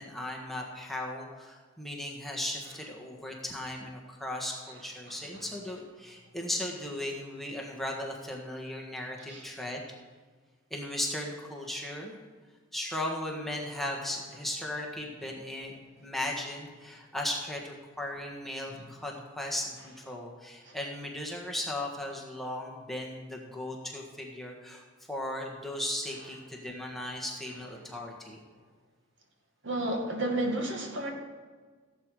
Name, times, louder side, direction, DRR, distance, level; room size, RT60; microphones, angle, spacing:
voice 1, 0.0-9.8 10.7-12.2 12.7-15.7 16.0-28.4, left 1 dB, ahead, -1 dB, 1.5 m, -37 dB
voice 2, 29.6-31.1, right 1 dB, 65° right, 2 dB, 2.0 m, -31 dB
16.0 x 8.0 x 4.8 m, 1.5 s
head